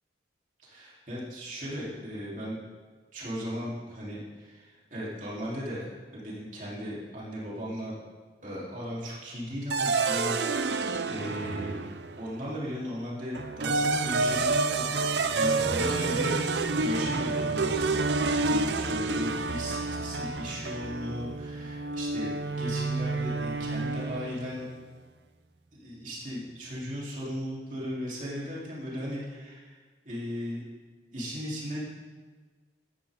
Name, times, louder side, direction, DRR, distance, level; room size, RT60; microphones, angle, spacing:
voice 1, 0.6-2.6 3.1-7.9 8.4-11.8 12.2-17.7 18.4-24.7 25.7-29.8 30.0-30.6 31.1-31.8, equal, 45° right, -6 dB, 3.8 m, -37 dB
sound 1, 9.7-12.3 13.3-24.5, right 3 dB, 80° right, 0.7 m, -29 dB
sound 2, 15.7-24.8 25.1-25.2, right 3 dB, 30° right, 0.5 m, -42 dB
16.0 x 12.5 x 3.9 m, 1.5 s
head